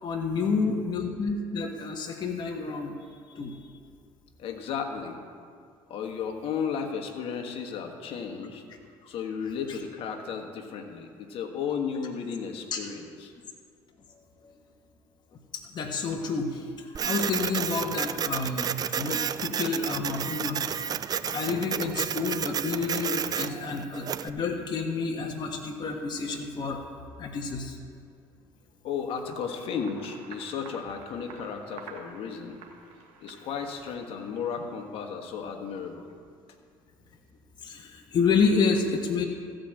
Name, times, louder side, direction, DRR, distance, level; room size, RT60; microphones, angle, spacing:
voice 1, 0.0-2.9 3.3-3.6 9.7-9.8 12.7-12.8 14.1-14.5 15.7-20.6 20.9-21.0 21.3-26.8 27.2-27.8 37.6-39.2, left 4 dB, 45° left, 1 dB, 1.4 m, -29 dB
voice 2, 4.4-5.2 5.9-8.6 9.1-13.3 28.8-32.6 33.2-36.1, left 6 dB, 60° left, 4 dB, 1.5 m, -34 dB
Printer, 17.0-24.3, right 8 dB, 35° right, 0.4 m, -31 dB
sound 1, 29.7-34.6, right 4 dB, 75° right, 1.4 m, -49 dB
15.0 x 5.1 x 7.7 m, 2.2 s
supercardioid pair, 75°, 11 cm